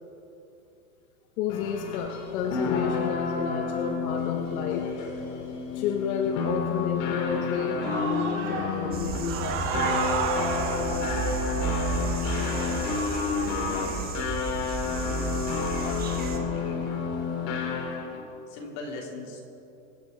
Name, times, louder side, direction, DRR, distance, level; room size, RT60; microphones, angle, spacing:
voice 1, 1.4-5.1 5.7-10.0, left 6 dB, 85° left, 3 dB, 1.3 m, -31 dB
sound 1, 1.5-18.2, left 5 dB, 70° left, 3.0 m, -30 dB
Human voice / Cheering, 7.5-14.1, right 5 dB, 70° right, 2.7 m, -33 dB
sound 2, 8.9-16.4, right 5 dB, 20° right, 1.3 m, -33 dB
voice 2, 12.5-14.1 14.9-17.0 18.5-19.4, left 2 dB, 55° left, -2 dB, 3.4 m, -41 dB
24.5 x 8.6 x 4.6 m, 2.8 s
supercardioid pair, 155°, 41 cm